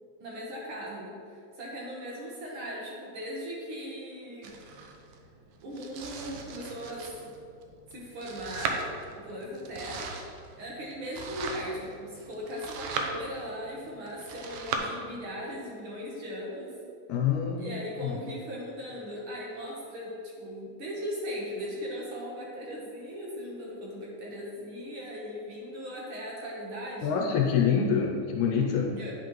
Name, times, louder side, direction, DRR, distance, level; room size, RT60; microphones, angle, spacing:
voice 1, 0.2-4.5 5.6-7.3 7.9-8.8 9.1-10.1 10.6-16.7 17.5-27.1 29.0-29.1, equal, 60° right, -4 dB, 1.4 m, -38 dB
Domestic sounds home sounds, 4.4-14.8, right 4 dB, 80° right, 1.7 m, -39 dB
voice 2, 17.1-18.2 27.0-29.0, left 6 dB, 80° left, 1 dB, 1.9 m, -26 dB
9.8 x 5.1 x 3.0 m, 2.5 s
omnidirectional pair, 3.5 m